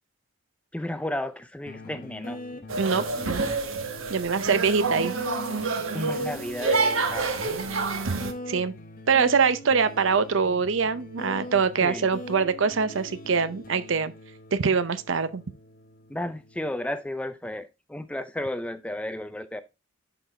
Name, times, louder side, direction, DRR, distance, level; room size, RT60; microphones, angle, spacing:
voice 1, 0.7-2.4 5.9-7.3 11.8-12.1 16.1-19.6, left 1 dB, 5° left, 0.4 m, -33 dB
sound 1, 1.7-16.7, left 1 dB, 45° left, 0.9 m, -42 dB
sound 2, 2.7-8.3, right 4 dB, 85° right, 1.2 m, -28 dB
voice 2, 2.8-3.5 4.1-5.1 8.2-8.7 9.1-14.1 14.5-15.4, right 5 dB, 70° right, 0.6 m, -24 dB
11.0 x 3.9 x 3.3 m
head